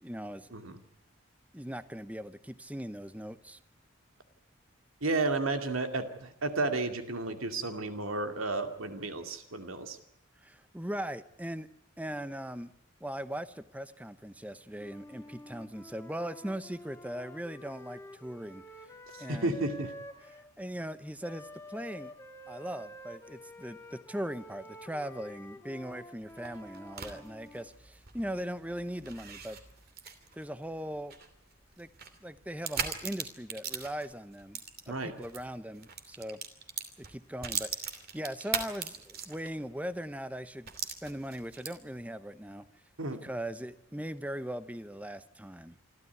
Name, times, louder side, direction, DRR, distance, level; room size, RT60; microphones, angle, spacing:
voice 1, 0.0-0.5 1.5-3.6 10.4-11.7 12.0-12.7 13.0-18.6 19.2-19.6 20.3-22.1 22.5-29.6 30.3-31.1 31.8-31.9 32.2-34.6 34.9-36.4 37.0-40.7 41.0-42.7 43.2-45.8, equal, 5° right, 12 dB, 0.8 m, -39 dB
voice 2, 5.0-10.0 19.3-19.9 34.9-35.1 43.0-43.2, right 2 dB, 75° right, 6 dB, 2.4 m, -32 dB
Wind instrument woodwind instrument, 14.7-20.5 21.2-27.7, left 1 dB, 10° left, 1.6 m, -49 dB
sound 1, 26.2-35.4 35.8-39.7 40.0-40.1 40.7-42.0, right 7 dB, 45° right, 2.8 m, -40 dB
27.0 x 13.0 x 9.5 m, 0.82 s
head